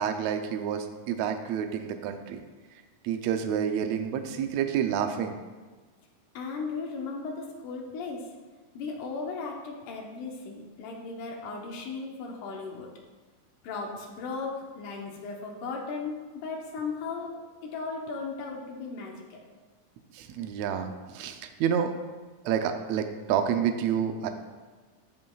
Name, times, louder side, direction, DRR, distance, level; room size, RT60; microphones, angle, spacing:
voice 1, 0.0-2.4 3.0-5.4 20.1-21.9 22.4-24.3, right 8 dB, 80° right, 6 dB, 1.6 m, -29 dB
voice 2, 6.3-8.3 8.7-12.9 13.6-19.4, left 4 dB, 90° left, 0 dB, 2.5 m, -36 dB
14.5 x 5.5 x 2.3 m, 1.3 s
omnidirectional pair, 3.6 m